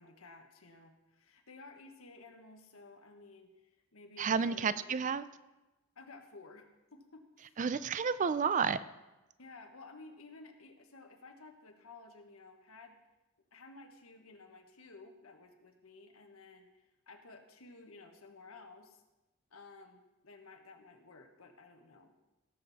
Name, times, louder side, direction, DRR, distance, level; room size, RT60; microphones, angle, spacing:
voice 1, 0.0-5.1 5.9-6.7 6.9-7.6 9.4-13.0 13.5-19.0 19.5-22.1, left 3 dB, 85° left, 5 dB, 1.5 m, -54 dB
voice 2, 4.2-5.2 7.6-8.8, right 6 dB, 35° right, 15 dB, 0.4 m, -31 dB
17.0 x 7.5 x 4.2 m, 1.0 s
head